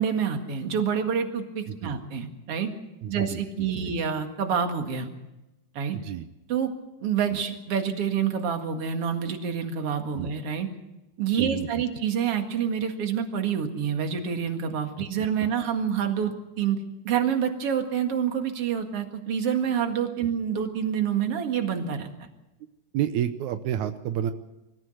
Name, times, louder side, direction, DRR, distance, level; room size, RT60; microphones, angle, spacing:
voice 1, 0.0-2.7 3.1-5.1 5.7-6.0 6.5-6.7 7.0-10.7 11.2-16.8 17.0-22.1, right 7 dB, 45° right, 5 dB, 2.3 m, -27 dB
voice 2, 3.0-3.9 5.9-6.2 7.3-7.4 10.1-10.3 11.4-11.8 15.4-15.5 22.9-24.3, right 10 dB, 85° right, 9 dB, 1.6 m, -30 dB
24.0 x 14.5 x 7.9 m, 0.99 s
omnidirectional pair, 4.5 m